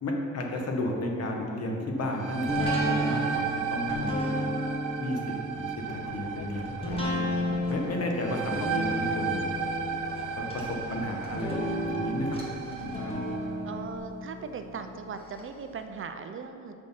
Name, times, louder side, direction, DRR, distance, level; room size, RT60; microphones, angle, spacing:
voice 1, 0.0-4.2 5.0-5.2 5.5-9.5 10.4-12.4 12.8-13.2, left 1 dB, 50° left, 1 dB, 1.3 m, -33 dB
sound 1, 2.0-13.5, right 7 dB, 70° right, 0.7 m, -35 dB
sound 2, 2.5-15.4 15.8-15.9, left 1 dB, 15° left, 1.4 m, -33 dB
sound 3, 5.9-13.9, left 6 dB, 85° left, 0.5 m, -46 dB
voice 2, 13.6-16.7, right 5 dB, 40° right, 8 dB, 0.5 m, -39 dB
6.3 x 6.1 x 5.6 m, 2.7 s
cardioid pair, 115°, 33 cm